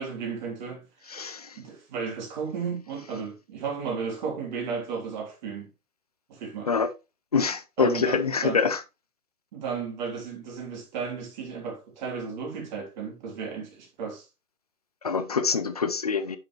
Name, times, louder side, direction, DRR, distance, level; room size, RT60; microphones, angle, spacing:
voice 1, 0.0-1.2 1.5-5.7 6.3-6.7 7.8-8.6 9.5-14.3, right 5 dB, 30° right, 3.3 m, -34 dB
voice 2, 1.1-1.6 6.7-6.9 7.3-8.8 15.0-16.4, left 5 dB, 25° left, 0.5 m, -25 dB
10.0 x 6.5 x 3.1 m
hypercardioid pair, 165°, 44 cm